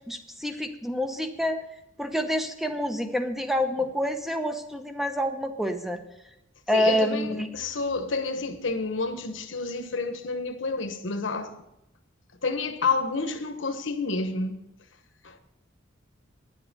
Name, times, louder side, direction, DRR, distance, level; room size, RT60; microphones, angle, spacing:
voice 1, 0.1-1.6 2.0-6.0 6.7-7.5, equal, ahead, 0.9 m, -27 dB
voice 2, 6.7-11.5 12.4-14.6 15.2-15.4, left 3 dB, 70° left, 1.2 m, -29 dB
10.5 x 7.5 x 7.8 m
head